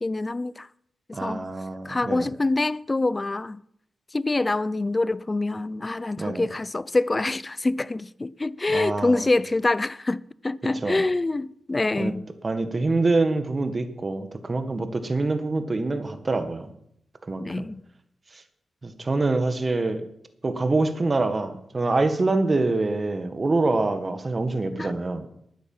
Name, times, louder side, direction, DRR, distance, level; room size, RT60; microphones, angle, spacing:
voice 1, 0.0-0.7 1.2-1.5 1.8-3.6 4.1-12.2 17.4-17.8 24.8-24.9, left 2 dB, 30° left, 0.5 m, -25 dB
voice 2, 1.1-2.3 6.2-6.4 8.7-9.3 10.8-11.0 12.0-12.1 12.4-16.7 17.3-17.7 18.3-18.4 18.8-20.0 20.4-25.3, right 3 dB, 40° right, 1.7 m, -25 dB
12.5 x 9.5 x 5.6 m
cardioid pair, 55°, 0 cm